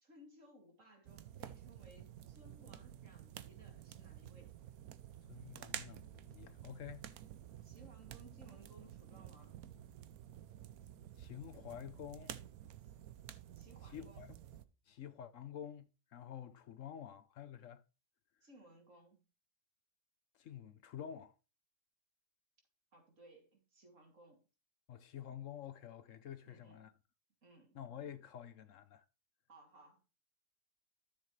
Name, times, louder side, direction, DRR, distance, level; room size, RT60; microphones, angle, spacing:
voice 1, 0.0-4.5 7.6-9.6 13.5-14.3 18.4-19.3 22.9-24.4 26.5-26.8 27.4-27.8 29.5-30.0, right 1 dB, 60° right, 2.9 m, -61 dB
sound 1, 1.1-14.7, right 11 dB, 80° right, 1.2 m, -51 dB
voice 2, 5.3-7.1 11.2-12.3 13.9-14.3 14.9-17.8 20.4-21.3 24.9-26.9 27.7-29.0, left 9 dB, 65° left, 1.0 m, -49 dB
13.0 x 7.2 x 3.2 m
omnidirectional pair, 1.5 m